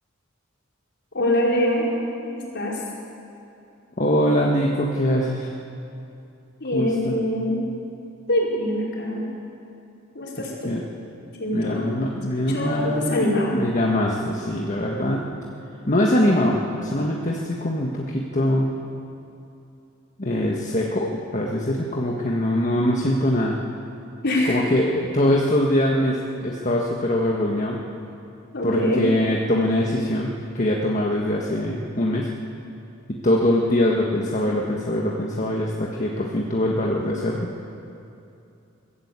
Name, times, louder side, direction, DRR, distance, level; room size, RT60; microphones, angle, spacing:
voice 1, 1.1-1.9 2.3-2.8 6.6-7.6 8.3-9.2 10.1-10.7 11.4-12.0 12.5-13.5 24.2-24.6 28.5-29.0, left 1 dB, 55° left, -4 dB, 5.0 m, -24 dB
voice 2, 4.0-5.5 6.7-7.1 10.4-10.8 11.5-13.2 13.5-15.2 15.9-18.7 20.2-23.6 24.4-27.8 28.6-32.3 33.1-37.5, left 1 dB, 40° left, -2 dB, 1.5 m, -23 dB
22.0 x 14.0 x 8.3 m, 2.7 s
head